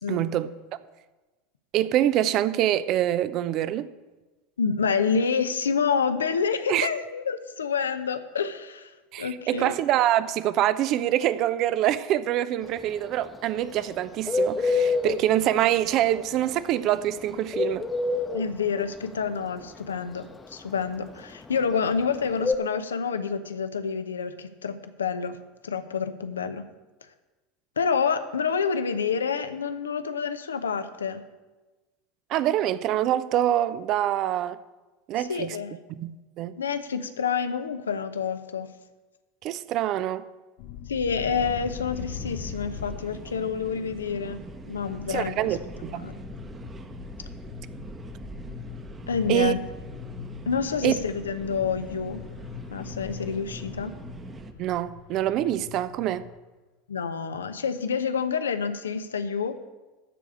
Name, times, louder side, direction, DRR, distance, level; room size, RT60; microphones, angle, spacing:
voice 1, 0.1-0.5 1.7-3.9 6.7-6.9 9.1-17.8 32.3-34.6 35.1-35.6 35.9-36.6 39.4-40.3 45.1-46.1 49.3-49.5 50.8-50.9 54.6-56.3, right 12 dB, 50° right, 0.6 m, -25 dB
voice 2, 4.6-8.9 9.2-9.7 18.3-25.4 25.6-26.6 27.8-31.2 35.2-35.7 36.6-38.7 40.9-45.3 45.9-46.1 49.1-49.6 50.5-52.2 52.7-53.9 56.9-59.6, left 6 dB, 80° left, 0.8 m, -28 dB
Bird, 12.6-22.6, left 3 dB, 20° left, 0.9 m, -27 dB
sound 1, 40.6-56.4, left 10 dB, 55° left, 0.7 m, -42 dB
sound 2, 41.2-54.5, right 4 dB, 25° right, 1.1 m, -43 dB
13.0 x 4.9 x 8.3 m
figure-of-eight pair, 80°, 0 cm